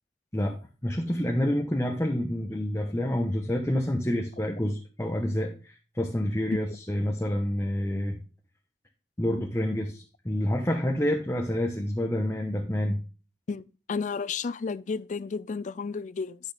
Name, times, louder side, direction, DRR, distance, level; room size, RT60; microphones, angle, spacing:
voice 1, 0.8-8.2 9.2-13.0, left 1 dB, 15° left, 1.1 m, -28 dB
voice 2, 13.9-16.4, left 5 dB, 45° left, 0.4 m, -32 dB
10.5 x 6.2 x 3.4 m
head